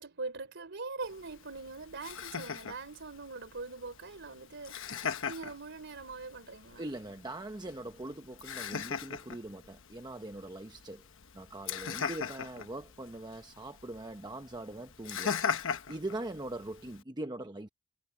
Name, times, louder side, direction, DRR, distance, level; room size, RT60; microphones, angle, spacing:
voice 1, 0.0-6.8, right 3 dB, 55° right, 3.7 m, -42 dB
Laughter, 1.0-17.0, left 6 dB, 60° left, 1.2 m, -40 dB
voice 2, 6.8-11.0 11.3-17.7, right 1 dB, 20° right, 0.8 m, -42 dB
head